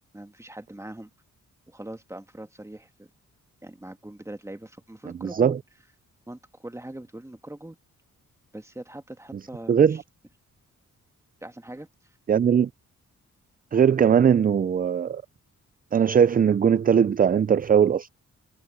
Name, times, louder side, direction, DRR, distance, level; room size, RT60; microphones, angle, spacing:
voice 1, 0.1-1.1 1.7-3.1 3.6-5.6 6.3-7.8 8.5-10.0 11.4-11.9, right 1 dB, 10° right, 2.1 m, -41 dB
voice 2, 5.2-5.6 9.7-10.0 12.3-12.7 13.7-15.2 15.9-18.1, right 7 dB, 30° right, 0.4 m, -20 dB
cardioid pair, 90°, 31 cm